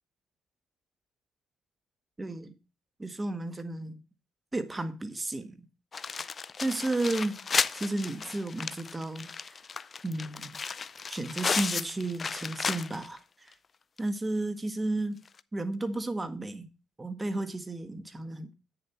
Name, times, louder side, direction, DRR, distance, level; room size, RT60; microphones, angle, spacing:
voice 1, 2.2-2.5 3.0-4.0 4.5-5.7 6.1-6.3 6.6-7.4 7.7-9.6 10.0-10.6 11.1-13.5 14.0-15.2 15.5-16.7 17.0-18.5, right 2 dB, 20° right, 1.5 m, -33 dB
sound 1, 5.9-13.2 13.5-13.6 14.0-14.1 15.3-15.4, left 5 dB, 35° left, 0.5 m, -34 dB
8.9 x 7.0 x 4.4 m
cardioid pair, 95°, 0 cm